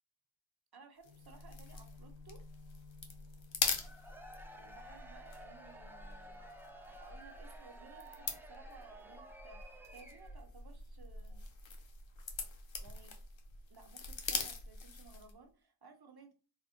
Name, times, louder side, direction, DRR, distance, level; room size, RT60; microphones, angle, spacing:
voice 1, 0.7-2.4 4.5-6.4 6.9-11.5 12.8-13.1 13.7-16.3, right 4 dB, 55° right, 5 dB, 0.9 m, -58 dB
sound 1, 1.0-15.4, left 4 dB, 80° left, 0.8 m, -43 dB
sound 2, 1.0-7.5 7.9-8.2 8.6-9.1 9.5-9.6, left 6 dB, 80° right, 0.9 m, -60 dB
Cheering / Crowd, 3.8-10.5, right 1 dB, 5° right, 0.6 m, -54 dB
3.5 x 2.1 x 4.2 m, 0.36 s
wide cardioid pair, 55°, 46 cm